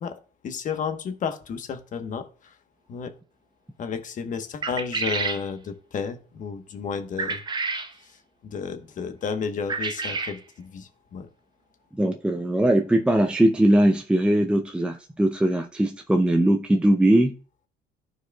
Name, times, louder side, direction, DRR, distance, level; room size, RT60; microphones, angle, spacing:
voice 1, 0.0-2.5 2.9-3.1 3.8-7.4 8.0-8.1 8.4-11.3, left 6 dB, 50° left, 8 dB, 1.1 m, -32 dB
sound 1, 4.6-5.4 7.2-7.9 9.7-10.4, right 4 dB, 25° right, 0.8 m, -29 dB
voice 2, 12.0-17.4, right 1 dB, 5° right, 3 dB, 0.5 m, -20 dB
14.0 x 4.7 x 2.3 m, 0.40 s
cardioid pair, 110°, 17 cm